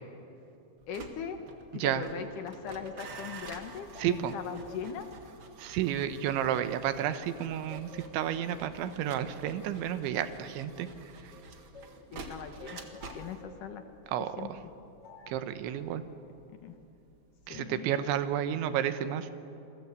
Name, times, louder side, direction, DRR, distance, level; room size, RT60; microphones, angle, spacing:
sound 1, 0.8-17.8 18.1-18.5, right 3 dB, 70° right, 1.1 m, -49 dB
voice 1, 0.9-1.4 1.7-5.1 12.1-13.8 14.4-14.5 16.5-16.8 17.5-17.9, left 7 dB, 70° left, 6 dB, 2.1 m, -40 dB
voice 2, 1.7-2.1 4.0-4.3 5.6-10.9 14.1-14.6 15.3-16.0 17.5-19.3, right 10 dB, 85° right, 10 dB, 3.5 m, -31 dB
sound 2, 2.2-7.3 7.7-12.0 12.6-14.0 15.0-15.5, left 2 dB, 35° left, 2.8 m, -53 dB
28.0 x 22.0 x 8.3 m, 2.7 s
omnidirectional pair, 5.2 m